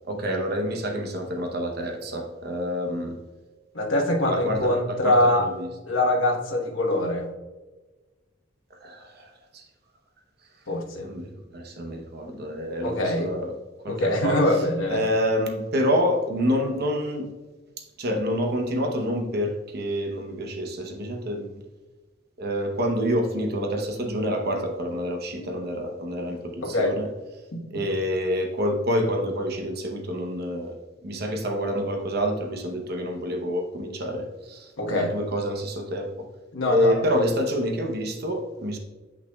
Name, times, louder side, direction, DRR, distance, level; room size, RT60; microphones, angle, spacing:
voice 1, 0.1-3.2 4.2-5.7 8.8-9.7 11.0-13.5 13.8-14.4 14.9-17.3 18.0-21.5 22.4-27.1 27.7-30.8 31.0-36.3 36.7-38.8, equal, 55° right, 3 dB, 0.8 m, -27 dB
voice 2, 3.7-5.4 5.9-7.3 10.7-11.1 12.8-13.3 13.9-15.0 26.6-26.9 27.5-27.8 34.8-35.1 36.5-37.0, left 1 dB, 85° left, 0 dB, 1.2 m, -23 dB
8.3 x 6.0 x 2.3 m, 1.3 s
head